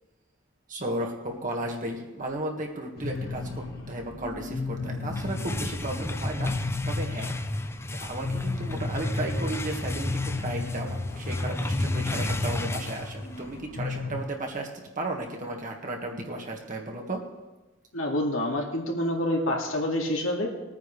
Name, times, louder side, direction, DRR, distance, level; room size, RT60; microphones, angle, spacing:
voice 1, 0.7-6.6 6.8-7.4 8.0-17.2, right 1 dB, 40° right, 1 dB, 1.8 m, -34 dB
sound 1, 3.0-14.2, left 3 dB, 50° left, 2.1 m, -35 dB
sound 2, 4.9-13.6, left 1 dB, 15° left, 0.5 m, -32 dB
voice 2, 17.9-20.5, left 1 dB, 80° left, 0 dB, 2.3 m, -27 dB
20.5 x 9.3 x 3.3 m, 1.1 s
head